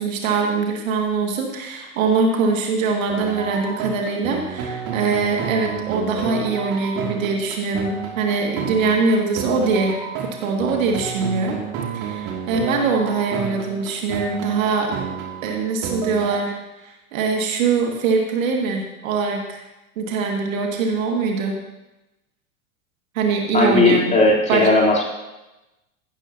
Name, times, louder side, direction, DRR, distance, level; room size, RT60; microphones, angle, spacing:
voice 1, 0.0-10.0 10.2-11.6 11.9-15.0 15.4-19.6 20.0-21.5 23.1-24.1 24.5-24.7, right 4 dB, 60° right, 1 dB, 2.3 m, -22 dB
sound 1, 3.1-16.3, right 7 dB, 45° right, 2.7 m, -30 dB
voice 2, 23.5-25.0, left 2 dB, 15° left, -3 dB, 3.7 m, -16 dB
15.5 x 13.5 x 2.9 m, 1.0 s
figure-of-eight pair, 85°, 45 cm